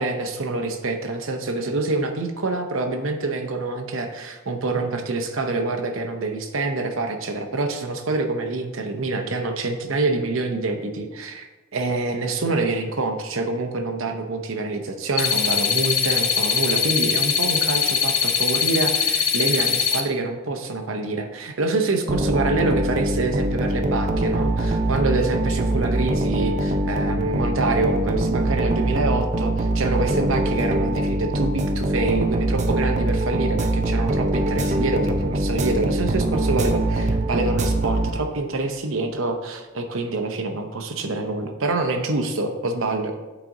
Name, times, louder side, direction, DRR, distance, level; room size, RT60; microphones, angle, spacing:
voice 1, 0.0-11.5 11.7-43.1, right 3 dB, 75° right, 5 dB, 0.8 m, -26 dB
sound 1, 15.2-20.0, left 7 dB, 80° left, 0.7 m, -22 dB
sound 2, 22.1-38.5, right 1 dB, 35° right, 0.5 m, -23 dB
9.0 x 4.1 x 3.7 m, 1.1 s
head